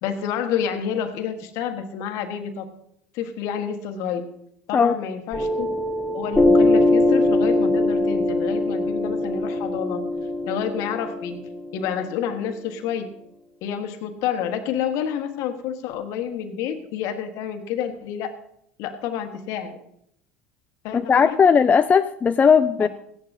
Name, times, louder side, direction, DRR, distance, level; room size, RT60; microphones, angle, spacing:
voice 1, 0.0-2.7 3.1-4.2 4.7-5.7 6.1-10.0 10.5-13.1 13.6-18.3 18.8-19.8 20.8-21.4 22.8-22.9, left 8 dB, 60° left, 7 dB, 1.4 m, -29 dB
Piano, 5.3-12.4, left 2 dB, 5° left, 1.5 m, -22 dB
voice 2, 20.9-22.9, left 6 dB, 25° left, 10 dB, 0.4 m, -17 dB
16.0 x 11.0 x 2.7 m, 0.73 s
hypercardioid pair, 85°, 6 cm